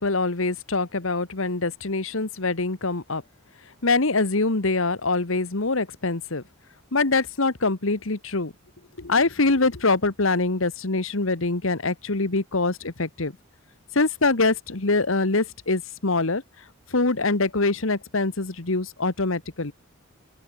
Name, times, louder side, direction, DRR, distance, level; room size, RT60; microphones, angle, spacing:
voice 1, 0.0-3.2 3.8-6.4 6.9-8.5 9.0-13.3 13.9-16.4 16.9-19.7, left 3 dB, 65° left, 1.5 m, -24 dB
open air
head